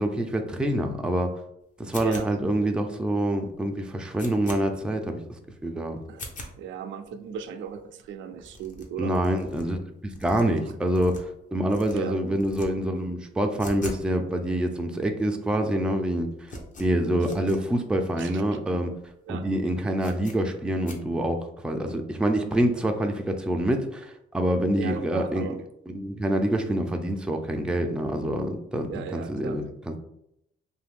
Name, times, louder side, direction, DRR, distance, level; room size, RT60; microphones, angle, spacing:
voice 1, 0.0-1.3 1.8-5.2 5.6-6.0 9.0-16.3 16.8-18.9 19.3-25.5 25.9-30.0, right 1 dB, 5° right, 4 dB, 0.3 m, -26 dB
sound 1, 1.9-2.6 3.1-3.2 3.5-3.6 3.9-4.6 5.1-5.2 5.5-5.6 6.1-6.5 7.1-7.2 7.3-7.4 7.6-7.7 8.0-8.1 8.4-9.6 10.1-11.4 11.7-11.9 12.3-12.7 12.9-14.1 14.3-14.4 15.1-15.2 15.3-15.7 16.0-17.6 18.0-18.1 18.3-18.4 18.9-19.1 19.3-19.4 20.0-20.4 20.8-21.0, left 1 dB, 40° left, 0.7 m, -42 dB
voice 2, 6.6-9.2 11.9-12.2 18.2-18.4 19.3-19.4 24.8-25.6 28.9-29.6, right 7 dB, 75° right, 7 dB, 0.4 m, -36 dB
2.6 x 2.4 x 3.4 m, 0.78 s
cardioid pair, 90°, 20 cm